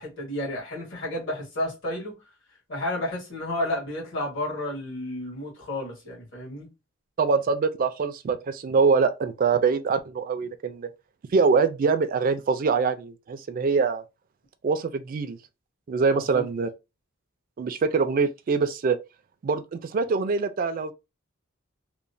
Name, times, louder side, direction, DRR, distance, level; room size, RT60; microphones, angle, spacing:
voice 1, 0.0-2.1 2.7-6.7 16.1-16.4, left 1 dB, 60° left, 1.5 m, -31 dB
voice 2, 7.2-10.9 11.3-14.0 14.6-15.4 15.9-16.7 17.6-19.0 19.4-20.9, right 5 dB, 40° right, 0.3 m, -24 dB
2.9 x 2.1 x 2.5 m
head